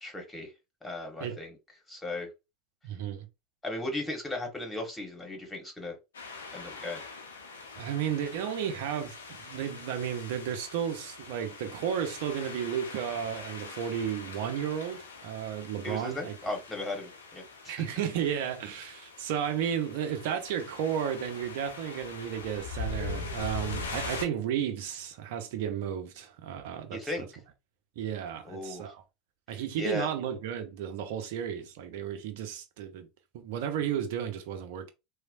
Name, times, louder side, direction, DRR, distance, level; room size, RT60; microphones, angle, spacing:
voice 1, 0.0-0.5 0.8-1.6 1.9-2.3 3.6-6.0 6.5-7.0 15.8-17.8 26.9-27.3 28.4-28.9 29.8-30.1, left 2 dB, 10° left, 1.4 m, -36 dB
voice 2, 2.8-3.3 7.8-16.3 17.7-27.3 28.0-29.0 29.5-33.1 33.3-34.9, right 9 dB, 65° right, 0.6 m, -33 dB
sound 1, 6.1-24.3, left 3 dB, 85° left, 0.6 m, -42 dB
3.0 x 2.1 x 2.6 m
hypercardioid pair, 80°, 0 cm